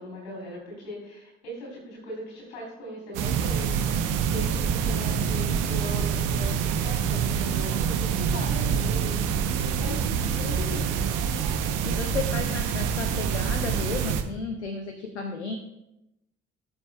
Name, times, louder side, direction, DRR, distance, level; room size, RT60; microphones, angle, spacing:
voice 1, 0.0-11.0, left 1 dB, 70° left, -3 dB, 3.5 m, -39 dB
sound 1, 3.1-14.2, right 7 dB, 65° right, 0.9 m, -26 dB
voice 2, 9.9-10.3 11.6-15.6, left 4 dB, 90° left, 6 dB, 0.5 m, -34 dB
16.0 x 7.1 x 2.3 m, 0.88 s
figure-of-eight pair, 40°, 34 cm